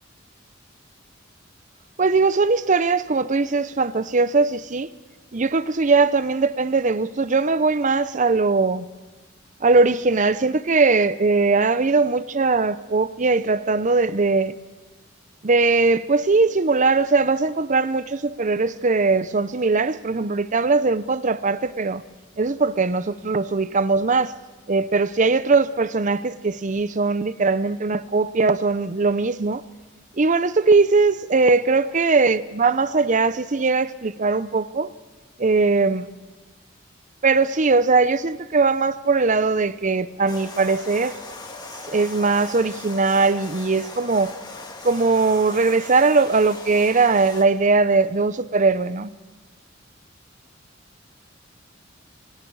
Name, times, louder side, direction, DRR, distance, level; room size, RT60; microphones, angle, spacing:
voice 1, 2.0-4.9 5.3-8.8 9.6-14.5 15.4-22.0 22.4-24.4 24.7-29.6 30.2-34.9 35.4-36.1 37.2-41.2 41.9-44.3 44.8-49.1, right 3 dB, 40° right, 0.7 m, -20 dB
sound 1, 40.3-47.4, left 3 dB, 25° left, 2.6 m, -39 dB
30.0 x 24.5 x 4.8 m
head